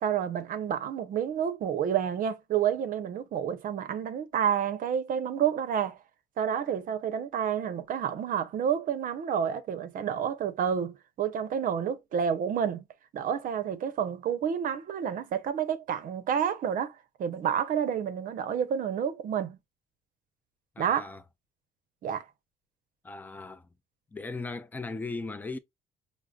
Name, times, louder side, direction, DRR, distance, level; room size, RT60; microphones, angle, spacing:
voice 1, 0.0-6.0 6.4-12.8 13.1-19.6 20.8-21.1 22.0-22.3, right 8 dB, 55° right, 0.6 m, -29 dB
voice 2, 20.8-21.2 23.0-23.7 24.1-25.6, left 3 dB, 10° left, 0.4 m, -37 dB
4.9 x 2.0 x 2.3 m
cardioid pair, 110°, 17 cm